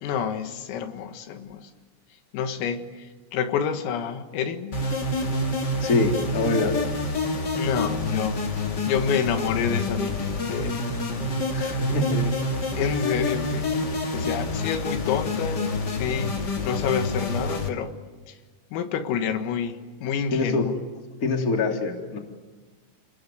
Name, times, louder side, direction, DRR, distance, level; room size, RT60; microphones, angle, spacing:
voice 1, 0.0-1.7 2.3-4.9 7.6-8.4 8.9-10.9 11.9-12.4 12.7-15.6 15.9-16.4 16.6-18.0 18.3-18.4 18.7-20.8, left 7 dB, 90° left, 8 dB, 4.4 m, -28 dB
sound 1, 4.7-17.7, left 2 dB, 55° left, 1.1 m, -27 dB
voice 2, 5.8-6.8 11.5-12.2 20.3-20.6 21.2-22.2, left 3 dB, 20° left, 2 dB, 2.6 m, -24 dB
30.0 x 19.5 x 9.6 m, 1.4 s
omnidirectional pair, 5.9 m